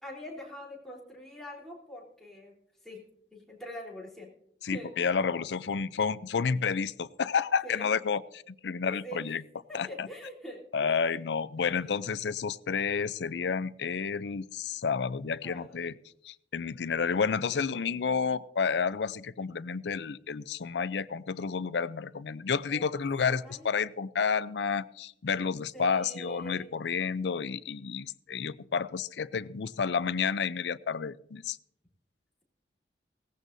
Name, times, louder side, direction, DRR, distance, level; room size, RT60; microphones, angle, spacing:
voice 1, 0.0-2.5 2.8-3.0 3.3-4.3 4.6-5.1 7.6-7.9 8.8-9.3 9.7-10.9 11.6-12.0 15.4-15.8 22.7-23.0 23.3-23.7 25.7-26.7, equal, ahead, -4 dB, 3.6 m, -44 dB
voice 2, 4.6-9.4 9.7-10.1 10.7-16.0 16.2-31.6, left 6 dB, 80° left, 17 dB, 0.5 m, -30 dB
18.0 x 15.0 x 2.7 m, 0.69 s
head